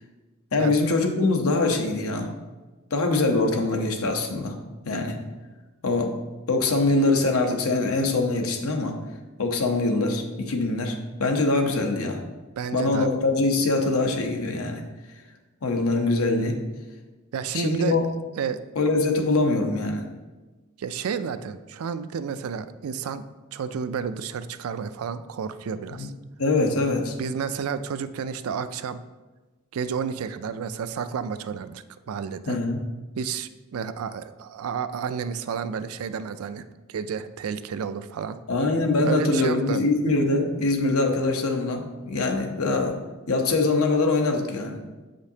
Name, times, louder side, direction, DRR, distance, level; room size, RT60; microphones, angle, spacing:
voice 1, 0.5-2.3 2.9-4.5 4.8-5.2 5.8-6.2 6.5-9.0 9.4-12.2 12.7-14.8 15.6-16.6 17.5-18.0 18.8-20.1 25.9-26.1 26.4-27.1 32.5-32.8 38.5-43.0 43.3-44.8, left 2 dB, 80° left, 4 dB, 0.8 m, -23 dB
voice 2, 12.6-13.1 17.3-18.0 18.3-18.6 20.8-23.2 23.5-26.1 27.2-29.0 29.7-32.6 33.2-36.6 36.9-38.4 39.0-39.8, right 6 dB, 90° right, 12 dB, 0.4 m, -31 dB
8.0 x 5.1 x 2.8 m, 1.2 s
head